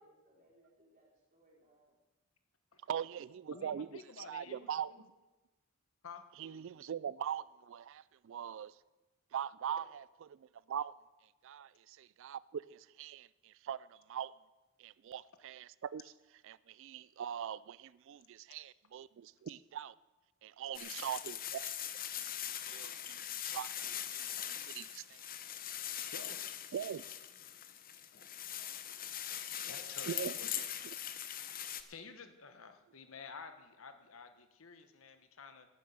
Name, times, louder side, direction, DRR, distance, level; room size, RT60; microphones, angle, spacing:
voice 1, 0.0-1.9 29.6-30.3, right 2 dB, 40° right, 4.8 m, -63 dB
voice 2, 2.9-3.9 4.2-4.9 6.4-8.7 9.3-11.0 11.4-14.3 14.8-16.1 16.4-19.9 20.4-21.7 22.1-25.3 26.7-27.0 30.1-30.4 30.6-31.0, right 9 dB, 65° right, 0.3 m, -42 dB
voice 3, 3.5-4.7 4.9-5.0 6.0-6.2 26.1-26.4 29.7-30.5 31.9-35.7, left 5 dB, 75° left, 1.2 m, -51 dB
sound 1, 20.7-31.8, left 10 dB, 45° left, 0.9 m, -41 dB
11.5 x 9.7 x 7.9 m
head